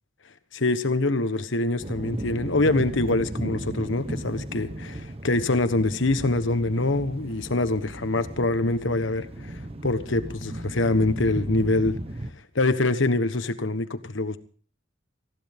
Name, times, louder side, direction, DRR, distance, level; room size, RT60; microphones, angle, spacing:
voice 1, 0.5-9.5 9.8-12.0 12.5-14.4, left 2 dB, 65° left, 11 dB, 1.3 m, -24 dB
sound 1, 1.8-12.3, right 1 dB, 30° right, 1.1 m, -35 dB
20.0 x 15.5 x 3.6 m, 0.43 s
head